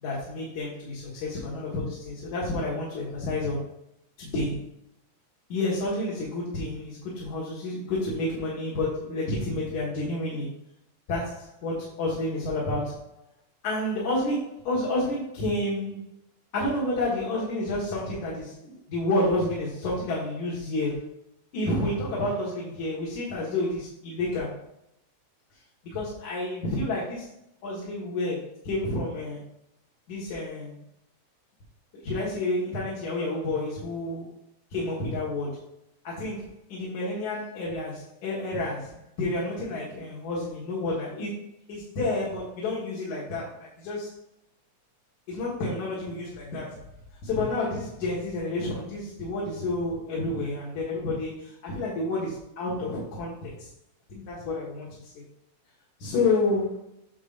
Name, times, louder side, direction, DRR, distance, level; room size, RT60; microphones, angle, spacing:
voice 1, 0.0-3.6 4.2-4.7 5.5-10.5 11.1-13.1 13.6-16.0 16.5-21.1 21.5-24.6 25.5-27.3 27.6-29.4 30.1-30.8 31.9-34.3 34.7-35.6 36.0-44.2 45.3-46.9 47.2-53.7 54.1-55.2 56.0-56.9, left 2 dB, 75° left, -6 dB, 3.2 m, -30 dB
9.6 x 6.4 x 2.6 m, 0.78 s
omnidirectional pair, 3.4 m